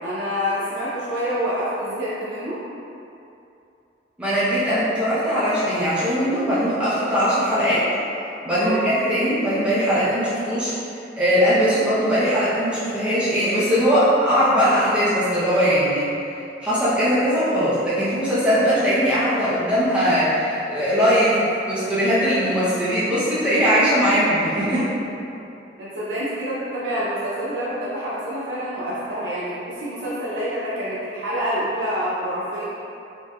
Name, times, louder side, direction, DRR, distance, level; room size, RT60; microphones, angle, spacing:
voice 1, 0.0-2.6 8.5-8.9 17.5-17.7 20.9-21.2 24.6-24.9 25.4-25.5 25.8-32.7, equal, 85° right, -9 dB, 0.6 m, -27 dB
voice 2, 4.2-7.8 8.4-10.7 11.1-16.1 16.6-24.8, equal, 5° right, -12 dB, 0.7 m, -20 dB
4.4 x 2.7 x 2.4 m, 2.7 s
head